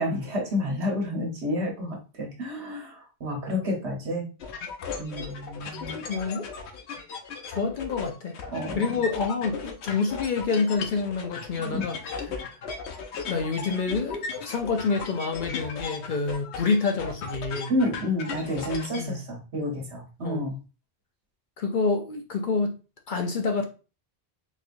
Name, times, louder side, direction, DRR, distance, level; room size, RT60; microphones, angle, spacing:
voice 1, 0.0-4.2 5.0-6.0 8.5-8.8 11.6-11.8 17.7-20.5, left 1 dB, 75° right, 1.4 m, -30 dB
sound 1, 4.4-19.1, left 5 dB, 80° left, 0.9 m, -37 dB
voice 2, 5.9-6.5 7.5-8.4 8.7-12.0 12.3-12.5 13.3-17.7 19.0-19.2 20.2-20.5 21.6-22.7 23.1-23.6, left 4 dB, 55° left, 0.6 m, -27 dB
4.0 x 2.8 x 2.5 m
omnidirectional pair, 1.1 m